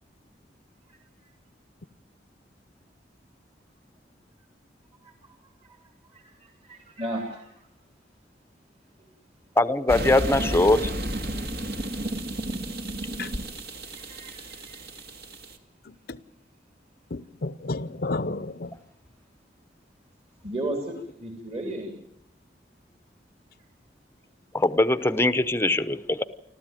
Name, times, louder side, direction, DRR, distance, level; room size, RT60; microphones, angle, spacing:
voice 1, 0.9-1.3 5.0-5.4 5.6-7.6 9.0-9.1 13.9-15.1 20.4-22.0, right 1 dB, 35° right, 3.1 m, -36 dB
voice 2, 9.6-10.9 24.5-26.2, left 2 dB, 15° left, 0.8 m, -22 dB
sound 1, 9.9-15.5, right 1 dB, 60° right, 2.4 m, -32 dB
voice 3, 15.9-16.2 17.1-18.7, left 2 dB, 60° left, 0.8 m, -32 dB
29.5 x 13.0 x 9.0 m
head